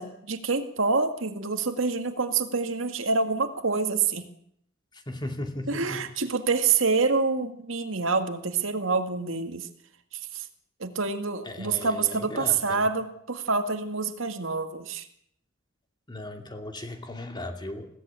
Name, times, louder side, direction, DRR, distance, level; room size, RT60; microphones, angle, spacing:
voice 1, 0.0-4.2 5.7-9.7 10.3-10.5 10.8-15.1, right 4 dB, 80° right, 7 dB, 2.1 m, -27 dB
voice 2, 4.9-6.0 11.5-12.9 16.1-17.9, left 1 dB, 25° left, 5 dB, 2.6 m, -37 dB
21.0 x 17.0 x 8.9 m, 0.71 s
head